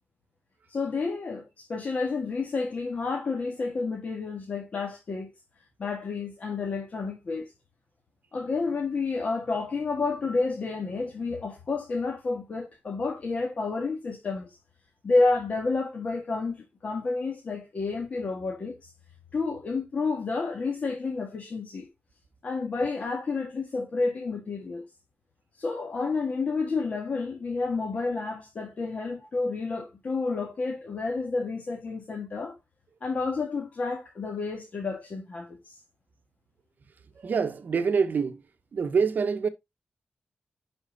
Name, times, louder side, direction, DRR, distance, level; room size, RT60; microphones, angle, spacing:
voice 1, 0.7-5.3 5.8-7.5 8.3-14.6 15.0-18.9 19.3-21.9 22.4-24.8 25.6-32.6 33.0-35.7, left 3 dB, 45° left, 1.6 m, -30 dB
voice 2, 37.2-38.4 38.7-39.5, right 5 dB, 55° right, 1.0 m, -25 dB
10.5 x 4.4 x 3.9 m
wide cardioid pair, 180°, 4 cm